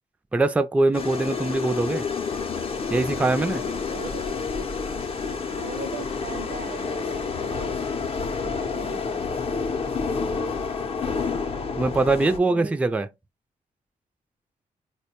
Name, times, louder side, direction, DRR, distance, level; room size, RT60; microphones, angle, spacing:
voice 1, 0.3-2.0 2.9-3.6 11.8-13.1, right 2 dB, 10° right, 0.3 m, -22 dB
sound 1, 0.9-12.4, left 5 dB, 40° left, 0.6 m, -29 dB
voice 2, 3.6-4.6 5.6-7.7 8.4-9.4 12.5-12.9, right 4 dB, 75° right, 0.6 m, -40 dB
4.3 x 2.2 x 2.8 m
cardioid pair, 90°, 15 cm